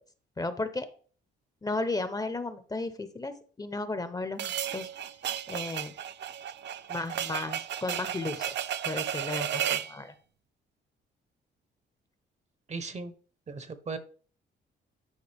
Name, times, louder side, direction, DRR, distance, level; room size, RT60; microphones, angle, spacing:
voice 1, 0.4-0.9 1.6-4.9 5.5-5.9 6.9-8.5 8.8-10.1, left 2 dB, 20° left, 11 dB, 0.7 m, -34 dB
sound 1, 4.4-9.9, right 10 dB, 60° right, 0.5 m, -33 dB
voice 2, 12.7-13.1 13.5-14.0, right 4 dB, 35° right, 11 dB, 0.9 m, -37 dB
9.6 x 5.0 x 3.4 m, 0.42 s
cardioid pair, 90°, 20 cm